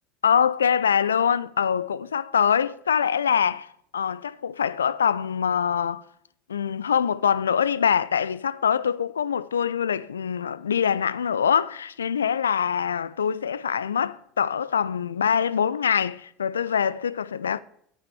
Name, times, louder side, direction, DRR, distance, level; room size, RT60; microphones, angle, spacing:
voice 1, 0.2-6.0 6.5-17.6, left 7 dB, 80° left, 0.3 m, -24 dB
9.6 x 8.4 x 4.7 m
figure-of-eight pair, 75°, 0 cm